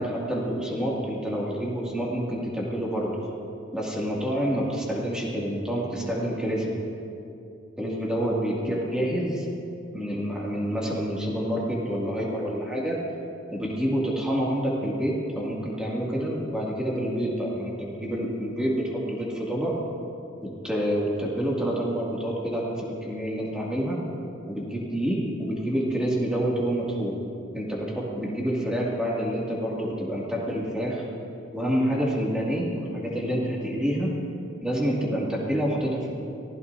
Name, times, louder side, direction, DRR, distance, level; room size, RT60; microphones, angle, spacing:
voice 1, 0.0-3.2 3.7-6.7 7.8-9.5 9.9-13.0 13.5-19.8 20.4-24.0 24.5-27.2 27.5-31.0 31.5-34.1 34.6-36.2, equal, 5° right, -5 dB, 2.3 m, -28 dB
23.5 x 16.0 x 2.7 m, 2.7 s
head